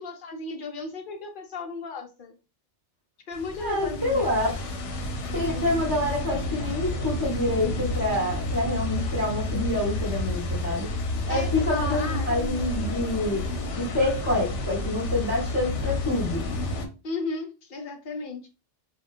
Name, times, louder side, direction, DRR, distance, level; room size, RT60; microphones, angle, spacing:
voice 1, 0.0-2.3 3.3-4.3 11.3-12.3 17.0-18.5, left 3 dB, 55° left, 0.7 m, -35 dB
sound 1, 3.3-16.9, left 1 dB, 80° left, 0.9 m, -30 dB
voice 2, 3.6-4.5 5.3-10.9 11.3-13.4 13.8-16.5, left 2 dB, 20° left, 0.9 m, -27 dB
2.4 x 2.2 x 3.5 m
omnidirectional pair, 1.2 m